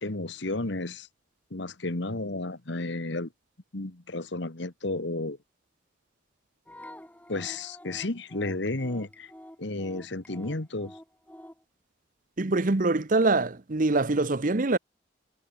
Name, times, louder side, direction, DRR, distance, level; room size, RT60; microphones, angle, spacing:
voice 1, 0.0-1.1 1.5-3.3 3.7-5.4 7.3-9.3 9.6-11.0, left 2 dB, 55° left, 1.5 m, -32 dB
sound 1, 6.7-11.6, left 1 dB, 5° left, 5.4 m, -48 dB
voice 2, 12.4-14.8, right 2 dB, 40° right, 0.8 m, -24 dB
head